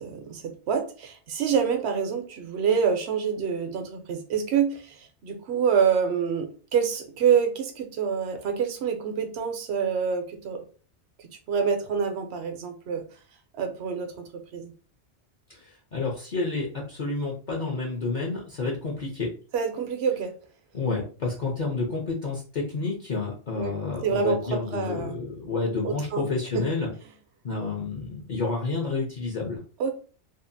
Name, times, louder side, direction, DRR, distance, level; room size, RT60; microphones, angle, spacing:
voice 1, 0.0-10.6 11.2-13.0 13.5-14.2 14.5-14.7 19.5-20.3 23.5-23.7 24.0-25.2 25.8-26.3 26.5-26.6 29.8-29.9, right 6 dB, 70° right, 5 dB, 0.8 m, -26 dB
voice 2, 15.5-19.3 20.7-26.9 27.4-29.6, left 3 dB, 50° left, -1 dB, 0.6 m, -30 dB
2.7 x 2.4 x 2.5 m, 0.38 s
omnidirectional pair, 1.2 m